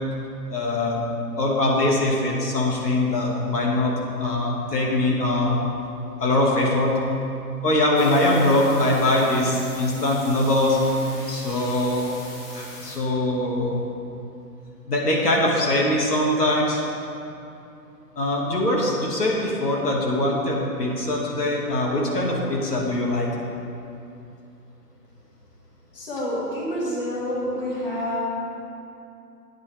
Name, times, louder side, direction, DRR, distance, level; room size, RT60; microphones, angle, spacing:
voice 1, 0.5-1.0 1.4-3.9 4.2-5.6 6.2-7.0 7.6-10.8 11.3-12.0 12.5-13.8 14.9-16.8 18.2-23.3, left 1 dB, 75° left, -2 dB, 2.2 m, -22 dB
sound 1, 8.0-13.0, left 1 dB, 55° left, 2.6 m, -42 dB
voice 2, 25.9-28.2, equal, 35° left, -6 dB, 1.9 m, -28 dB
11.5 x 9.1 x 3.4 m, 2.7 s
hypercardioid pair, 165°, 48 cm